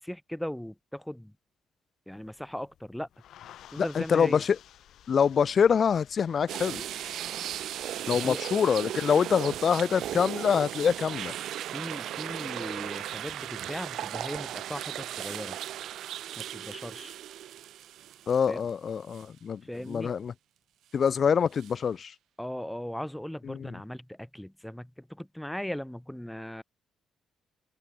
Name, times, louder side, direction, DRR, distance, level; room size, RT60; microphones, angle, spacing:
voice 1, 0.0-1.3 2.1-3.1 3.7-4.4 8.1-8.4 11.7-15.6 16.4-17.1 18.5-18.6 19.6-20.1 22.4-26.6, equal, 5° left, 1.0 m, -38 dB
sound 1, 2.1-8.2, left 11 dB, 75° left, 1.7 m, -54 dB
voice 2, 3.8-4.6 5.1-6.8 8.1-11.3 18.3-19.6 19.9-20.3 20.9-22.1 23.5-23.7, left 7 dB, 50° left, 0.5 m, -25 dB
sound 2, 6.5-18.7 19.1-19.2 21.6-21.7, right 12 dB, 75° right, 0.7 m, -36 dB
cardioid pair, 90°, 0 cm